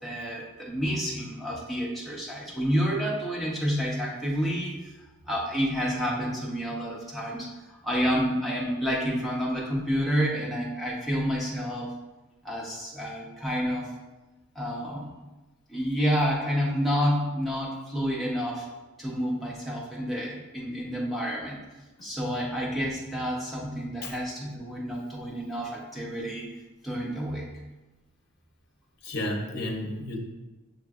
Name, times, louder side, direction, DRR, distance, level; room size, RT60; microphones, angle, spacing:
voice 1, 0.0-4.9 5.3-11.9 12.4-13.9 14.5-15.2 15.7-18.7 19.0-21.6 22.0-26.5 26.8-27.5, equal, ahead, -5 dB, 0.7 m, -29 dB
voice 2, 29.0-30.2, left 1 dB, 50° left, 1 dB, 0.7 m, -32 dB
6.7 x 3.1 x 2.4 m, 1.1 s
head